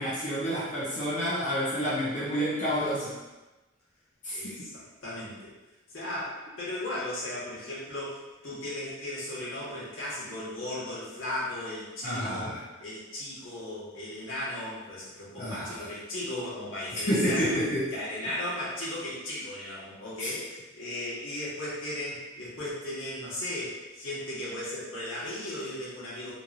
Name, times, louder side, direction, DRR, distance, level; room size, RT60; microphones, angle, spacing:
voice 1, 0.0-3.2 4.2-4.6 12.0-12.6 15.4-15.9 16.9-17.9 20.2-20.3, equal, 40° left, -8 dB, 0.6 m, -29 dB
voice 2, 4.3-5.5 5.9-12.5 12.8-17.6 17.9-26.3, left 1 dB, 90° left, -8 dB, 1.2 m, -36 dB
3.0 x 2.6 x 2.4 m, 1.1 s
head